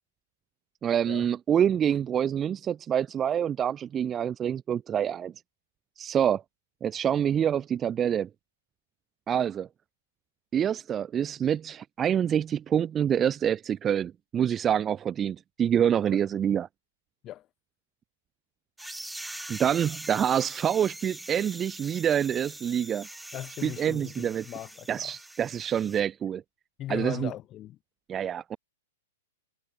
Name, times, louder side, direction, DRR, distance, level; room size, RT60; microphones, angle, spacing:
voice 1, 0.8-5.3 6.0-6.4 6.8-8.3 9.3-9.7 10.5-16.7 19.5-23.1 23.6-24.4 24.9-26.4 26.9-27.3 28.1-28.6, right 9 dB, 20° right, 0.9 m, -26 dB
sound 1, 18.8-26.0, right 1 dB, 5° right, 1.4 m, -43 dB
voice 2, 23.3-25.2 26.8-27.8, left 13 dB, 30° left, 4.0 m, -39 dB
hypercardioid pair, 135°, 0 cm